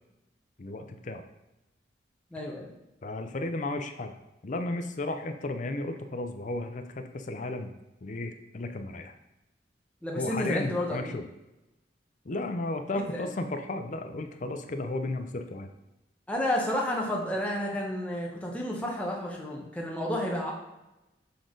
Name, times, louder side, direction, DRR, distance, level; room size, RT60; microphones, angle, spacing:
voice 1, 0.6-1.3 3.0-4.1 4.4-7.7 8.0-9.1 10.1-11.3 12.2-15.7, left 2 dB, 45° left, 7 dB, 0.5 m, -34 dB
voice 2, 2.3-2.7 10.0-11.2 13.1-13.3 16.3-20.5, left 1 dB, 10° left, -2 dB, 1.1 m, -31 dB
6.9 x 3.8 x 3.8 m, 0.96 s
head